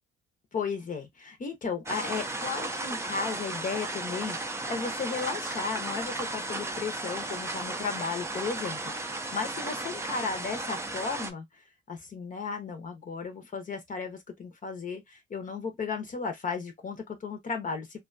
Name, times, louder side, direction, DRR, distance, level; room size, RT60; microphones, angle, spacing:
voice 1, 0.5-18.0, left 5 dB, 40° left, 0.7 m, -35 dB
sound 1, 1.9-11.3, right 2 dB, 15° right, 0.4 m, -35 dB
2.6 x 2.2 x 2.4 m
cardioid pair, 90°, 20 cm